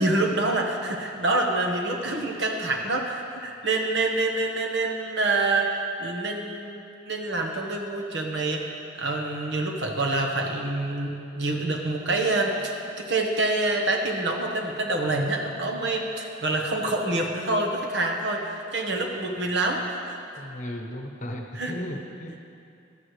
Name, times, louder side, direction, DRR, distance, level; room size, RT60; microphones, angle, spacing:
voice 1, 0.0-8.6 9.0-20.2 21.5-21.7, right 2 dB, 70° right, 1 dB, 1.3 m, -26 dB
voice 2, 20.4-22.5, left 1 dB, 40° left, 2 dB, 1.0 m, -36 dB
14.5 x 12.0 x 3.3 m, 2.6 s
head